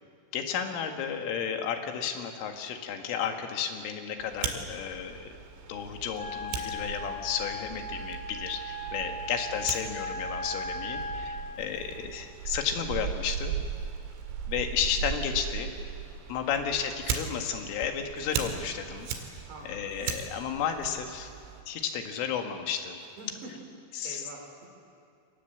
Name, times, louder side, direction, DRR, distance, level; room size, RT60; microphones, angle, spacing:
voice 1, 0.3-5.4 5.7-13.6 14.5-15.7 16.3-19.3 19.6-21.3 21.7-23.0 23.9-24.2, left 7 dB, 85° left, 5 dB, 4.4 m, -33 dB
Fire, 4.2-21.6, right 7 dB, 80° right, 4.6 m, -38 dB
Wind instrument woodwind instrument, 6.1-11.5, left 1 dB, 10° right, 0.8 m, -38 dB
voice 2, 8.8-9.2 11.5-11.8 16.4-16.6 19.5-19.9 23.0-23.5 24.0-24.7, right 2 dB, 65° right, 1 dB, 6.5 m, -47 dB
28.0 x 22.0 x 8.0 m, 2.5 s
omnidirectional pair, 5.6 m